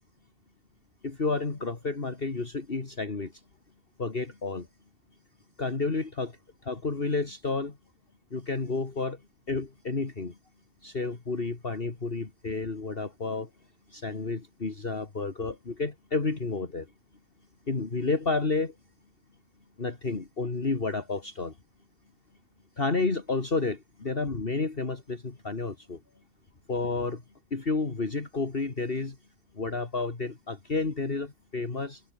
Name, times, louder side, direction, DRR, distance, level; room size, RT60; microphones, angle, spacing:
voice 1, 1.0-3.3 4.0-4.7 5.6-6.3 6.7-7.7 8.3-9.2 9.5-10.3 10.8-13.5 13.9-16.9 17.7-18.7 19.8-21.5 22.8-26.0 26.7-27.2 27.5-29.2 29.6-32.0, left 3 dB, 40° left, 2.5 m, -30 dB
omnidirectional pair, 1.4 m